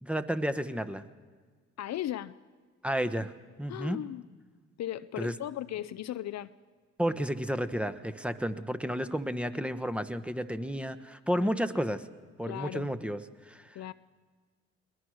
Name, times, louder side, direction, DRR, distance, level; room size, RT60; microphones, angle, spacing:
voice 1, 0.0-1.0 2.8-3.3 3.6-4.0 5.2-5.3 7.0-12.0 12.4-13.2 13.5-13.6, equal, 5° right, 11 dB, 1.2 m, -31 dB
voice 2, 1.8-2.3 3.7-4.3 4.8-6.5 11.4-11.6 12.4-12.9 13.7-13.9, left 12 dB, 60° left, 14 dB, 0.6 m, -37 dB
22.0 x 18.5 x 6.5 m, 1.5 s
supercardioid pair, 55°, 30 cm